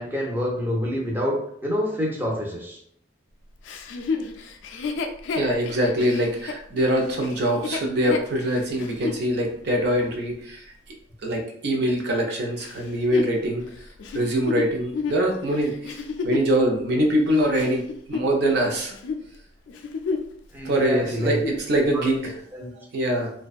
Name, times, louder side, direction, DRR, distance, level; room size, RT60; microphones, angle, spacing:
voice 1, 0.0-2.8 20.5-21.4 21.9-22.2 22.5-22.7, equal, 10° right, -2 dB, 0.5 m, -27 dB
Chuckle chortle, 3.6-9.2 9.8-9.9 12.6-16.6 17.2-18.7 18.9-19.2 19.7-20.4 20.7-20.8 21.2-21.7 22.3-22.4, left 4 dB, 80° left, 0.3 m, -31 dB
voice 2, 5.3-10.6 11.2-13.6 14.1-18.9 20.6-22.3 22.9-23.3, right 1 dB, 60° right, 1 dB, 0.5 m, -23 dB
2.5 x 2.2 x 2.3 m, 0.65 s
head